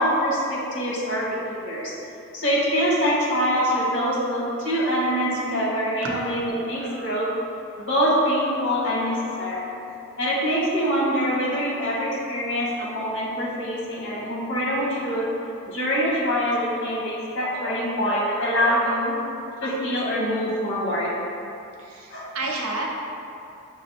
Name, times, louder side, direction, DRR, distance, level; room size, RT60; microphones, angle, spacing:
voice 1, 0.0-1.9 2.3-7.3 7.8-9.7 10.2-15.3 15.7-19.2 19.6-21.1 22.1-22.3, equal, 55° left, -6 dB, 1.1 m, -24 dB
voice 2, 21.8-23.0, right 2 dB, 75° right, -2 dB, 0.6 m, -30 dB
6.0 x 2.1 x 4.1 m, 2.7 s
head